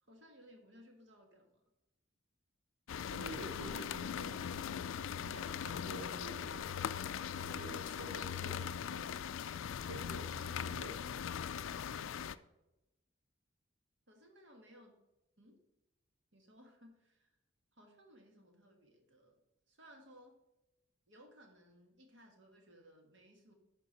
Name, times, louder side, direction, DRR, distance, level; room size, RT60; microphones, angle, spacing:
voice 1, 0.0-1.6 14.1-14.9 15.4-15.6 16.3-17.3 17.7-19.4 19.7-20.3 21.1-23.5, equal, 65° right, 2 dB, 1.7 m, -61 dB
heaviernow side, 2.9-12.4, left 8 dB, 70° left, 0.3 m, -40 dB
voice 2, 3.1-4.5 5.2-6.7 7.4-9.2 9.9-11.0, right 1 dB, 80° right, 5 dB, 1.3 m, -49 dB
12.0 x 4.5 x 4.4 m, 0.94 s
head